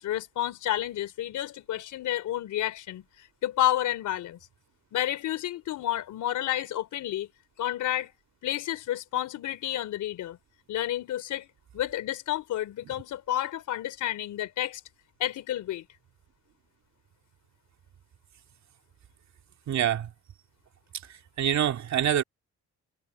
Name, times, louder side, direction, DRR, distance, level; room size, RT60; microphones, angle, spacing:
voice 1, 0.0-4.4 4.9-7.3 7.6-8.1 8.4-10.4 10.7-11.5 11.7-14.8 15.2-15.9, left 13 dB, 80° left, 3.6 m, -30 dB
voice 2, 19.7-20.1 21.4-22.2, right 10 dB, 65° right, 2.5 m, -25 dB
cardioid pair, 90°, 30 cm